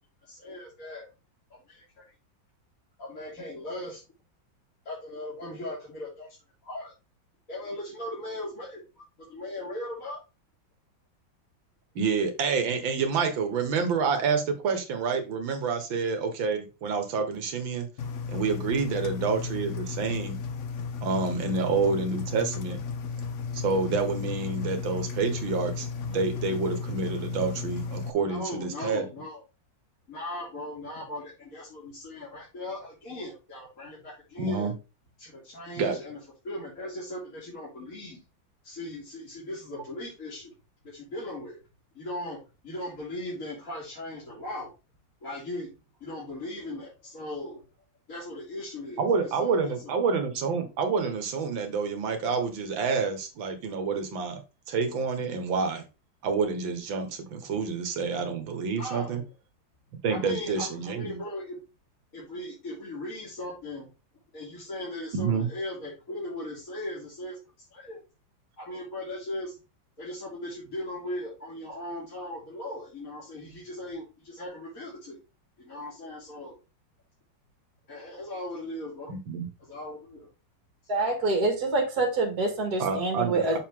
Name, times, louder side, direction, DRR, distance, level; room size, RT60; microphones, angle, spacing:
voice 1, 0.3-1.1 1.7-2.1 3.0-4.0 4.8-6.3 6.6-6.9 7.5-8.8 9.3-10.2 28.2-29.4 30.1-34.7 35.2-36.2 36.4-38.2 38.6-40.5 40.8-41.6 41.9-42.4 42.6-44.7 45.2-45.7 46.0-47.6 48.1-49.9 58.8-59.3 60.1-61.6 62.1-63.9 64.3-67.4 67.7-68.0 68.6-69.5 70.0-75.2 75.6-76.5 77.9-79.1 79.7-80.3 80.9-81.1, left 1 dB, 45° left, -8 dB, 3.3 m, -38 dB
voice 2, 12.0-17.9 18.3-20.4 21.0-22.8 23.5-29.0 34.4-34.7 35.8-36.0 49.0-54.4 54.7-55.8 56.2-59.2 60.0-61.2 65.1-65.5 79.1-79.5 82.8-83.6, right 5 dB, 90° right, 6 dB, 2.1 m, -28 dB
Engine, 18.0-28.1, left 5 dB, 65° left, 0.8 m, -34 dB
voice 3, 80.9-83.6, right 2 dB, 55° right, 3 dB, 2.4 m, -26 dB
6.7 x 4.8 x 3.7 m, 0.29 s
omnidirectional pair, 2.1 m